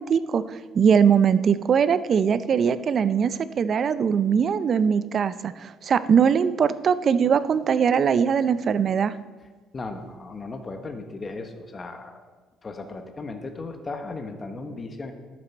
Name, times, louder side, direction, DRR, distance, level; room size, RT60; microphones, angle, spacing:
voice 1, 0.0-9.1, right 7 dB, 45° right, 15 dB, 0.4 m, -21 dB
voice 2, 9.7-12.2 12.6-15.1, left 3 dB, 30° left, 5 dB, 1.1 m, -36 dB
11.0 x 7.7 x 4.4 m, 1.3 s
cardioid pair, 105°, 0 cm